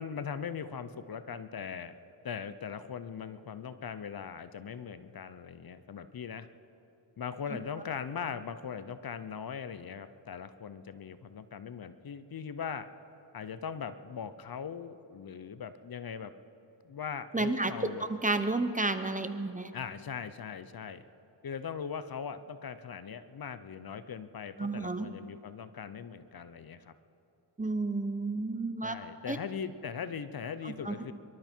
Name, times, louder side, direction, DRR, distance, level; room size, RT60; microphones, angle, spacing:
voice 1, 0.0-1.9 2.2-6.5 7.2-12.9 13.3-16.3 16.8-18.1 19.7-21.0 21.4-26.9 28.8-31.1, left 7 dB, 50° left, 12 dB, 0.8 m, -40 dB
voice 2, 17.3-17.7 18.1-19.7 24.6-25.1 27.6-28.9 29.3-29.4 30.6-30.9, right 2 dB, 15° right, 10 dB, 0.9 m, -31 dB
25.0 x 12.5 x 4.5 m, 2.8 s
cardioid pair, 70°, 46 cm